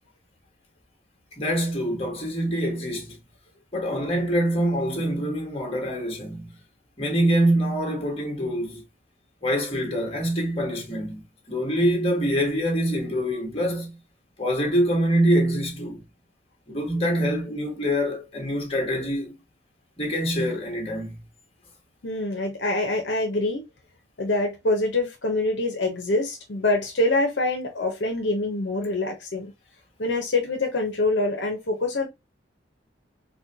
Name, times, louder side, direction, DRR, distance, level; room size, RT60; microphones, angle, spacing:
voice 1, 1.4-3.2 3.7-6.5 7.0-8.8 9.4-11.2 11.5-13.9 14.4-16.0 16.7-19.3 20.0-21.2, equal, 30° left, 1.2 m, -25 dB
voice 2, 22.0-23.6 24.2-29.5 30.0-32.1, left 2 dB, 65° left, 0.7 m, -25 dB
4.2 x 2.2 x 2.6 m
head